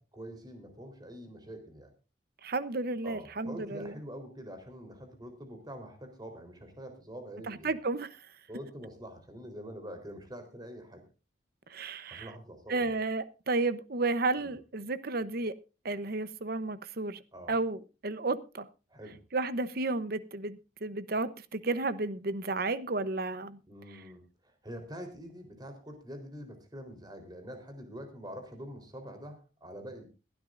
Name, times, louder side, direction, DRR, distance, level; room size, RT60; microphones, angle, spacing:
voice 1, 0.0-1.9 3.0-7.8 8.5-11.0 12.1-13.0 14.4-14.6 17.3-17.6 18.9-19.2 23.7-30.1, equal, 25° right, 3.8 m, -45 dB
voice 2, 2.4-3.9 7.5-8.1 11.7-12.3 12.7-15.5 15.8-17.2 17.5-18.7 19.3-23.6, right 3 dB, 55° right, 0.9 m, -32 dB
22.0 x 12.5 x 2.6 m
head